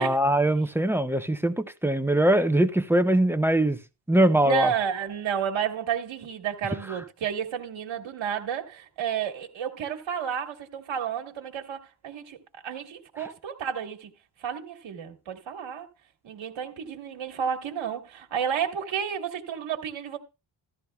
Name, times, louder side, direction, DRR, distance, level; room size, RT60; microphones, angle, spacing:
voice 1, 0.0-3.8 4.1-4.7, right 1 dB, 5° right, 0.4 m, -22 dB
voice 2, 4.4-14.1 14.4-15.9 16.2-20.2, right 8 dB, 75° right, 1.5 m, -31 dB
14.0 x 12.0 x 2.3 m
cardioid pair, 110°, 46 cm